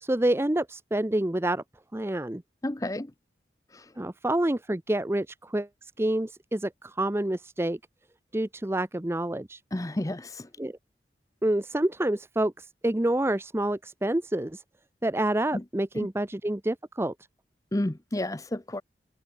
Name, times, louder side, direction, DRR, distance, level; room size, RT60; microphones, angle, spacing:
voice 1, 0.0-1.6 1.9-2.4 4.0-7.8 8.3-9.6 10.6-10.8 11.4-14.6 15.0-17.1, right 1 dB, 15° right, 0.6 m, -28 dB
voice 2, 2.6-3.1 9.7-10.4 15.5-15.6 15.9-16.1 17.7-18.8, left 1 dB, 20° left, 0.7 m, -30 dB
head